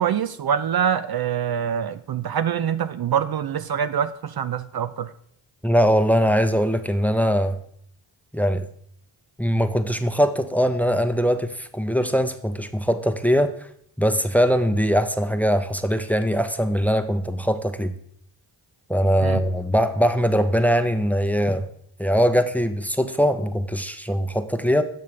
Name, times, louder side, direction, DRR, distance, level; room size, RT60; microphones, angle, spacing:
voice 1, 0.0-5.1 19.2-19.4, right 8 dB, 55° right, 0.5 m, -25 dB
voice 2, 5.6-7.6 8.3-8.6 9.4-13.5 14.0-17.9 18.9-21.7 22.0-24.8, equal, 5° left, 0.7 m, -21 dB
10.5 x 6.7 x 3.3 m
cardioid pair, 55°, 46 cm